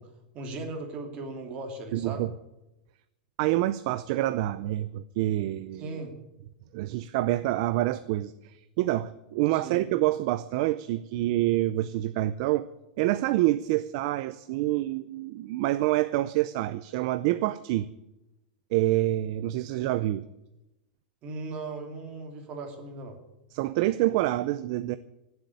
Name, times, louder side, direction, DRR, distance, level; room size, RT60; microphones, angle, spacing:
voice 1, 0.0-2.2 5.7-6.1 9.5-9.9 19.7-19.9 21.2-23.2, right 3 dB, 25° right, 4 dB, 2.7 m, -38 dB
voice 2, 1.9-2.3 3.4-6.0 6.7-8.3 8.8-12.6 13.0-17.9 18.7-20.3 23.5-25.0, right 15 dB, 40° right, 14 dB, 0.5 m, -27 dB
16.0 x 8.0 x 9.7 m, 0.93 s
supercardioid pair, 170°, 5 cm